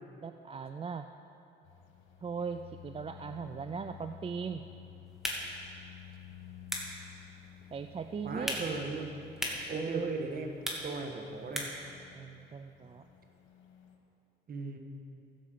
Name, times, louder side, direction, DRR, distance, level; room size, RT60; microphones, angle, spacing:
voice 1, 0.2-1.1 2.2-4.7 7.7-8.6 9.7-10.2 12.1-13.0, right 6 dB, 30° right, 8 dB, 0.4 m, -39 dB
sound 1, 1.6-14.0, left 10 dB, 85° left, 1.5 m, -53 dB
sound 2, 5.1-11.9, equal, ahead, 2.0 m, -41 dB
voice 2, 8.2-9.2 9.7-10.6 10.8-11.7 14.5-14.8, right 3 dB, 50° right, 4 dB, 1.4 m, -37 dB
15.5 x 5.3 x 7.4 m, 2.7 s
cardioid pair, 90°, 20 cm